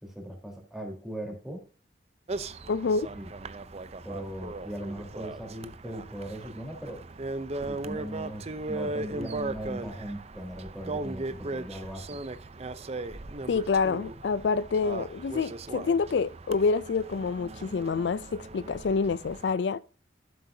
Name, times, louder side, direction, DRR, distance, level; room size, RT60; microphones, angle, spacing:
voice 1, 0.0-1.6 3.2-3.3 4.0-7.0 7.7-12.2, right 1 dB, ahead, 3.8 m, -39 dB
sound 1, 2.3-19.5, right 2 dB, 35° right, 0.6 m, -38 dB
voice 2, 2.7-3.1 13.5-19.8, left 4 dB, 75° left, 0.4 m, -27 dB
13.5 x 7.7 x 2.7 m
head